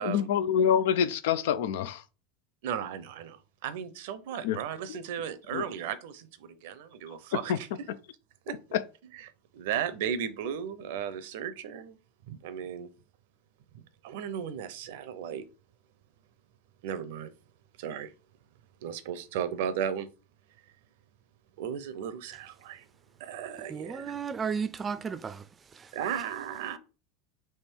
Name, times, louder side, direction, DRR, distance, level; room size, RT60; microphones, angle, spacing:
voice 1, 0.0-2.0 4.4-4.6 4.9-5.0 5.5-5.7 7.5-7.6 7.9-8.0 8.7-8.8, left 8 dB, 75° left, 0.4 m, -26 dB
voice 2, 2.6-7.7 8.5-8.6 9.5-12.0 12.3-12.9 13.7-15.4 16.8-17.3 17.8-18.1 18.8-20.1 21.6-22.8 23.2-24.2 25.9-26.8, right 8 dB, 75° right, 0.6 m, -35 dB
voice 3, 23.7-25.4 25.8-25.9, right 6 dB, 25° right, 0.4 m, -34 dB
3.5 x 3.0 x 4.5 m
supercardioid pair, 110°, 0 cm